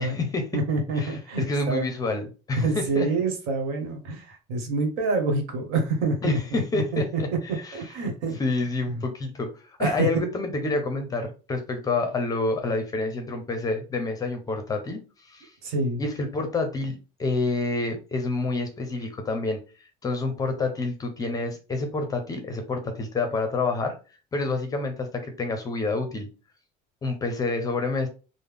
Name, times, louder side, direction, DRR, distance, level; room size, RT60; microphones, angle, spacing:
voice 1, 0.0-0.5 0.9-1.2 1.5-3.1 6.2-7.8 8.3-15.0 15.3-15.5 16.0-19.6 20.0-24.0 24.3-26.3 27.0-28.1, left 3 dB, 20° left, 6 dB, 0.5 m, -28 dB
voice 2, 0.5-1.9 2.6-7.0 7.7-8.4 8.9-9.0 9.8-10.1 15.6-16.0, right 3 dB, 80° right, 4 dB, 1.1 m, -27 dB
3.5 x 2.0 x 3.4 m, 0.34 s
cardioid pair, 150°, 17 cm